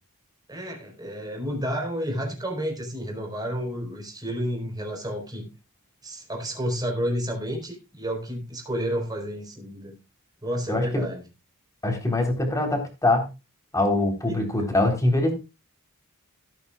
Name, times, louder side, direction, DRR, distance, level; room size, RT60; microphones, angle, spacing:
voice 1, 0.5-5.5 6.0-10.0 10.4-11.2 14.3-14.4, equal, 20° right, 2 dB, 4.2 m, -31 dB
voice 2, 10.7-11.0 11.8-13.3 13.7-15.3, left 2 dB, 15° left, 3 dB, 3.7 m, -23 dB
17.0 x 9.1 x 2.4 m, 0.28 s
head